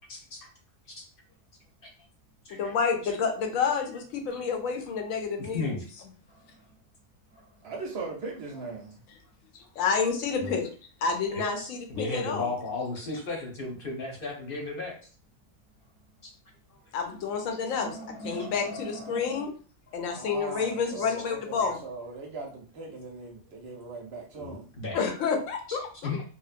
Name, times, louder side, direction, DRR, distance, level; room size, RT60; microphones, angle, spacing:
voice 1, 0.1-0.5 0.9-1.0 1.8-1.9 2.4-2.7 3.0-3.1 5.4-5.9 10.4-10.6 11.3-15.0 16.7-16.8 18.3-18.5 20.0-20.1 21.0-21.1 21.6-21.7 24.4-25.0 25.7-25.8 26.0-26.2, left 3 dB, 50° left, 0 dB, 0.8 m, -35 dB
voice 2, 2.5-5.8 9.8-10.7 11.0-12.5 16.9-19.5 19.9-21.8 24.9-26.1, left 5 dB, 85° left, 4 dB, 1.0 m, -29 dB
sound 1, 3.0-5.7 6.2-6.8 7.3-8.4 8.7-8.8 9.3-9.4 11.6-11.7 12.3-13.5 13.9-14.0 15.7-16.1 16.5-16.6 17.0-19.4, right 1 dB, 5° right, 1.0 m, -46 dB
voice 3, 7.6-9.0 20.1-24.7, right 3 dB, 60° right, 1 dB, 0.7 m, -39 dB
2.8 x 2.0 x 2.4 m, 0.40 s
omnidirectional pair, 1.3 m